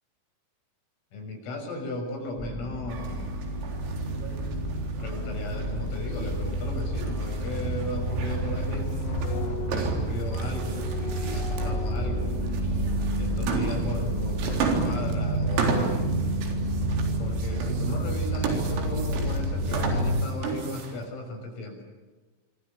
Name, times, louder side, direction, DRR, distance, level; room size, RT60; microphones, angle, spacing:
voice 1, 1.1-3.4 5.0-8.9 9.7-12.4 13.2-16.1 17.2-21.8, left 1 dB, 90° left, 3 dB, 9.1 m, -36 dB
sound 1, 2.4-20.2, right 1 dB, 10° right, 6.1 m, -29 dB
sound 2, 2.9-21.1, right 4 dB, 85° right, 6.5 m, -35 dB
sound 3, 4.6-4.7 6.4-7.2 7.5-13.0 13.8-15.1, left 3 dB, 50° left, 3.3 m, -39 dB
26.5 x 25.0 x 8.7 m, 1.3 s
omnidirectional pair, 5.9 m